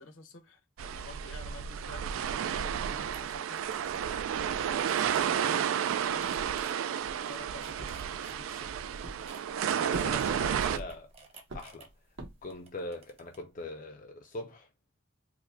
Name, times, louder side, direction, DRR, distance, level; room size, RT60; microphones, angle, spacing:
voice 1, 0.0-3.7 4.4-9.0, left 2 dB, 75° left, 0.9 m, -51 dB
sound 1, 0.8-10.8, right 8 dB, 90° right, 0.3 m, -32 dB
sound 2, 2.7-2.8 3.1-3.2 3.5-4.1 4.4-5.6 6.2-6.7 7.4-8.6 9.2-11.9 12.5-13.4, right 3 dB, 30° right, 0.7 m, -51 dB
sound 3, 7.8-8.6 9.0-9.6 9.9-11.1 11.5-12.6, right 2 dB, 70° right, 0.9 m, -43 dB
voice 2, 9.7-11.1 11.5-11.9 12.4-14.7, left 2 dB, 40° left, 0.4 m, -41 dB
4.7 x 2.1 x 2.5 m
head